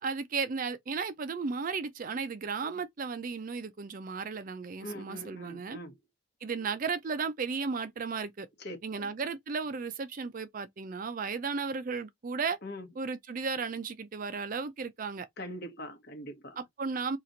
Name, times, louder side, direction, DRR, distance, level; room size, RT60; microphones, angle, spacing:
voice 1, 0.0-5.8 6.4-8.5 8.8-12.6 13.0-15.3 16.6-17.2, right 5 dB, 40° right, 0.4 m, -34 dB
voice 2, 4.8-6.0 8.6-9.1 12.6-12.9 15.4-16.6, equal, 55° left, 1.1 m, -42 dB
2.9 x 2.5 x 3.8 m
head